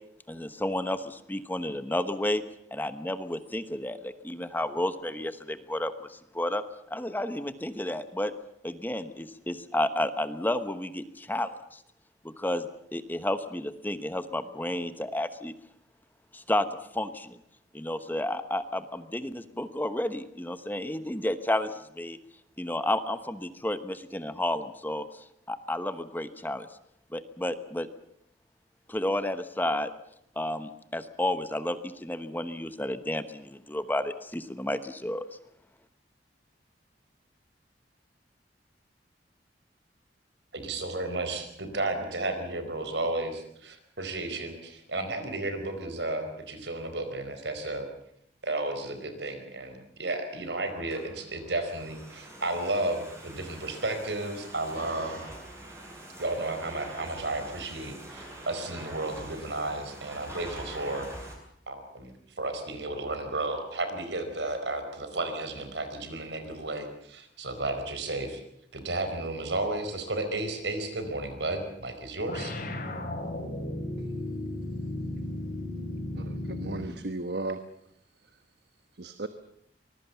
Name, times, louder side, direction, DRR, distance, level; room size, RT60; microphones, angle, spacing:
voice 1, 0.3-2.4 2.7-6.6 6.9-8.3 8.6-11.8 12.2-12.7 12.9-15.5 16.3-16.7 16.9-17.4 17.7-21.7 22.0-22.2 22.6-26.7 27.1-27.9 28.9-29.9 30.4-35.3, left 1 dB, 10° left, 11 dB, 1.1 m, -31 dB
voice 2, 40.5-47.9 48.4-55.3 56.2-61.1 61.7-68.4 68.7-72.5, right 2 dB, 85° right, 8 dB, 4.7 m, -33 dB
Domestic sounds home sounds, 50.7-61.3, right 1 dB, 15° right, 7.0 m, -45 dB
sound 1, 72.3-77.0, left 1 dB, 55° left, 5.4 m, -35 dB
voice 3, 76.1-77.6 79.0-79.3, right 2 dB, 65° right, 10 dB, 1.3 m, -35 dB
25.0 x 21.0 x 7.0 m, 0.71 s
head